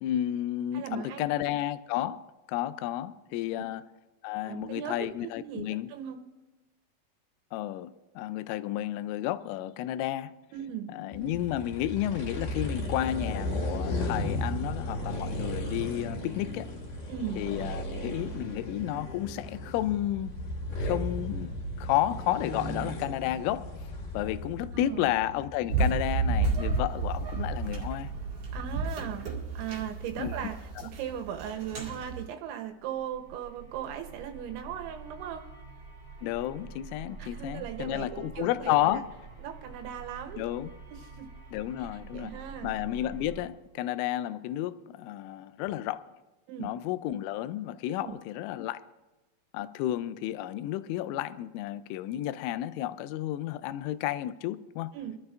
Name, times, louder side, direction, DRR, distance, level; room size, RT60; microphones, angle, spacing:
voice 1, 0.0-3.8 4.2-5.9 7.5-10.3 10.9-16.7 17.4-20.4 20.8-23.7 24.1-28.1 30.2-30.5 36.2-39.1 40.4-40.7 41.5-46.1 46.6-48.8 49.5-54.9, left 13 dB, 85° left, 3.1 m, -32 dB
voice 2, 0.7-1.5 3.5-3.6 4.4-6.2 10.5-10.9 17.1-17.4 24.7-25.1 28.5-29.3 29.5-35.5 37.2-39.0 39.4-40.4 40.9-41.3 41.8-41.9 42.1-42.7 46.5-46.7 47.9-48.2 54.9-55.2, right 9 dB, 80° right, 3.1 m, -38 dB
sound 1, 11.1-26.2, left 1 dB, 50° left, 3.4 m, -35 dB
sound 2, 25.7-32.2, right 4 dB, 45° right, 2.3 m, -31 dB
sound 3, 32.8-43.5, right 4 dB, 25° right, 2.0 m, -47 dB
26.0 x 12.5 x 2.5 m
omnidirectional pair, 5.6 m